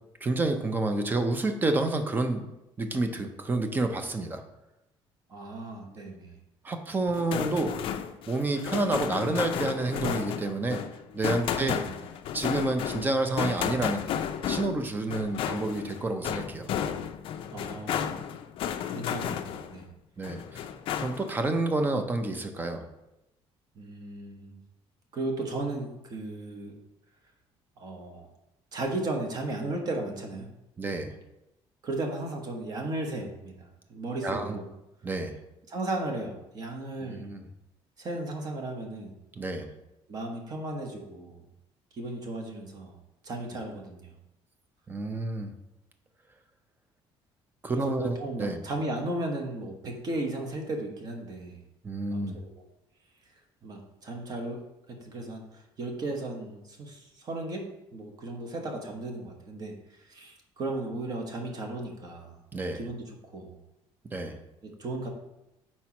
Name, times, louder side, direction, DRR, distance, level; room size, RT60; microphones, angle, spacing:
voice 1, 0.2-2.5 2.8-4.4 6.6-7.8 8.3-10.8 11.1-11.8 12.3-14.1 14.5-16.7 20.2-20.6 20.9-22.9 30.8-31.1 34.2-34.6 35.0-35.4 37.0-37.4 39.4-39.7 44.9-45.5 47.6-48.6 51.8-52.4 62.5-62.8 64.1-64.4, right 2 dB, 20° right, 6 dB, 0.5 m, -29 dB
voice 2, 5.3-6.3 11.5-11.9 17.5-18.2 18.9-19.9 23.7-24.6 25.1-26.7 27.8-28.3 28.7-30.5 31.8-34.7 35.7-37.3 38.0-39.1 40.1-41.4 41.9-43.0 43.2-44.1 47.7-51.6 52.1-52.3 52.5-52.6 53.6-54.6 54.9-55.4 55.8-59.8 60.1-62.3 62.7-63.0 63.3-63.5 64.6-65.1, right 2 dB, 40° right, 2 dB, 1.1 m, -35 dB
sound 1, 7.1-19.8 20.2-21.4, left 9 dB, 55° left, 0.4 m, -33 dB
4.4 x 4.3 x 5.8 m, 0.90 s
cardioid pair, 165°, 11 cm